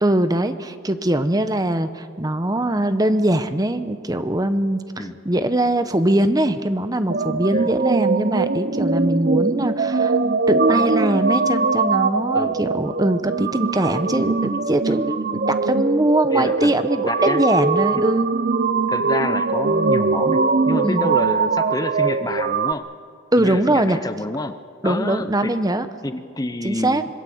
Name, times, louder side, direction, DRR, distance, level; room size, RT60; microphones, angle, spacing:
voice 1, 0.0-10.2 10.5-18.3 20.8-21.1 23.3-24.0 24.8-25.9 26.6-27.0, right 1 dB, 20° right, 10 dB, 0.8 m, -21 dB
sound 1, 7.1-22.7, right 4 dB, 45° right, 0.6 m, -21 dB
voice 2, 16.3-17.4 18.9-22.9 23.4-25.5 26.0-27.1, left 2 dB, 20° left, 10 dB, 0.7 m, -28 dB
26.0 x 21.5 x 7.9 m, 2.2 s
head